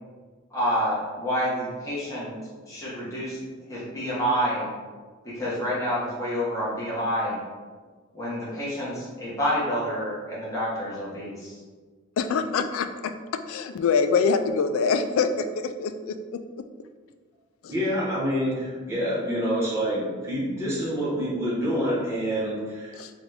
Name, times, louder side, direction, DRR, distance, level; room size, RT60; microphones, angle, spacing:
voice 1, 0.5-2.3 2.7-3.4 3.7-4.7 5.2-7.4 8.1-11.6, equal, 15° left, -8 dB, 1.1 m, -28 dB
voice 2, 12.2-13.1 13.5-15.5 15.8-16.4 23.0-23.1, left 5 dB, 80° left, 9 dB, 0.3 m, -24 dB
voice 3, 17.7-23.0, equal, 15° right, -7 dB, 1.1 m, -27 dB
3.9 x 2.4 x 3.3 m, 1.5 s
head